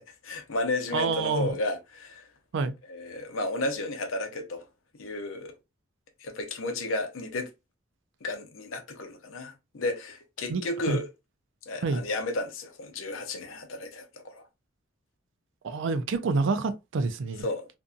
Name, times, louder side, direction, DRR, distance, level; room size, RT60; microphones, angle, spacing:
voice 1, 0.0-2.3 2.9-4.7 5.0-5.6 6.2-7.5 8.2-11.1 11.7-14.4 17.4-17.7, left 2 dB, 80° left, 0.6 m, -33 dB
voice 2, 0.9-1.5 2.5-2.7 10.5-11.0 11.8-12.0 15.6-17.5, right 4 dB, 65° right, 0.4 m, -28 dB
2.6 x 2.5 x 2.2 m
head